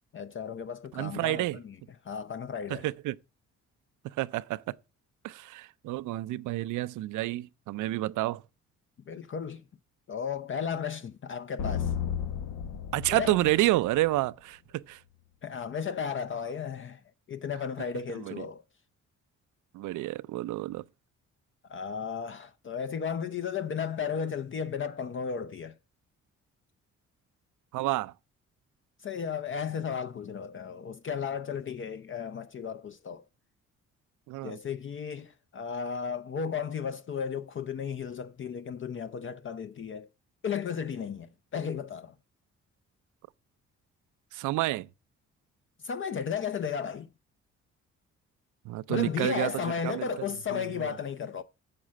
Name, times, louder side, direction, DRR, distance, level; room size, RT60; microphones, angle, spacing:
voice 1, 0.1-1.7 2.0-2.9 9.1-9.6 10.1-11.9 13.1-13.5 15.4-17.0 17.3-18.6 21.7-25.7 29.0-33.2 34.4-40.1 40.4-42.1 45.8-47.1 48.9-51.4, left 7 dB, 40° left, 0.6 m, -34 dB
voice 2, 0.9-1.6 2.7-3.2 4.2-4.8 5.2-8.4 12.9-15.0 18.1-18.4 19.7-20.8 27.7-28.1 34.3-34.6 44.3-44.9 48.7-49.5 49.8-50.1 50.5-50.9, right 17 dB, 80° right, 0.5 m, -29 dB
sound 1, 11.6-14.3, left 8 dB, 75° left, 0.9 m, -33 dB
7.5 x 6.0 x 6.3 m
cardioid pair, 90°, 30 cm